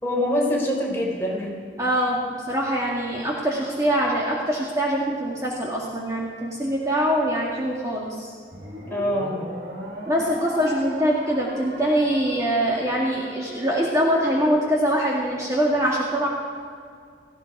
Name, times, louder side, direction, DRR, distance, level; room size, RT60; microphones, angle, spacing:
voice 1, 0.0-1.7 8.9-9.4, left 1 dB, 15° left, -3 dB, 3.7 m, -24 dB
voice 2, 1.8-8.3 10.1-16.3, equal, 20° right, -4 dB, 2.0 m, -23 dB
sound 1, 8.5-15.0, right 1 dB, 85° right, 3.8 m, -38 dB
18.5 x 15.0 x 4.8 m, 2.2 s
head